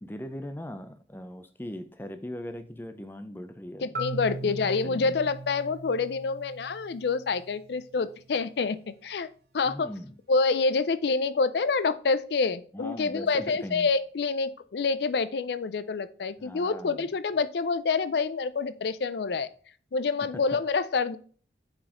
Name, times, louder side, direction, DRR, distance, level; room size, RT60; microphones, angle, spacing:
voice 1, 0.0-3.9 4.4-5.2 9.6-10.1 12.7-13.9 16.4-17.1, equal, 10° left, 9 dB, 0.5 m, -40 dB
voice 2, 3.8-9.3 9.5-9.9 10.3-19.5 19.9-21.2, left 4 dB, 70° left, 14 dB, 0.4 m, -27 dB
Marimba xylophone, 3.9-7.8, right 2 dB, 65° right, 0.9 m, -39 dB
5.3 x 4.9 x 3.7 m, 0.44 s
head